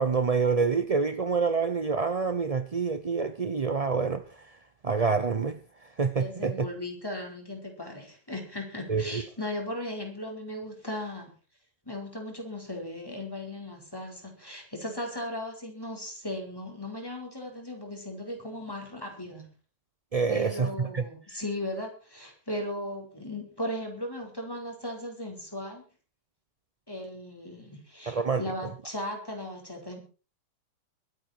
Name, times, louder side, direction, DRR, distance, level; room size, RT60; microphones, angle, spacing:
voice 1, 0.0-4.2 4.8-5.6 6.0-6.7 8.9-9.2 20.1-21.1 28.1-28.4, right 5 dB, 45° right, 0.4 m, -27 dB
voice 2, 6.2-11.3 11.8-19.5 20.3-25.8 26.9-30.0, left 1 dB, 10° left, 4.8 m, -37 dB
23.5 x 9.1 x 4.6 m
omnidirectional pair, 1.9 m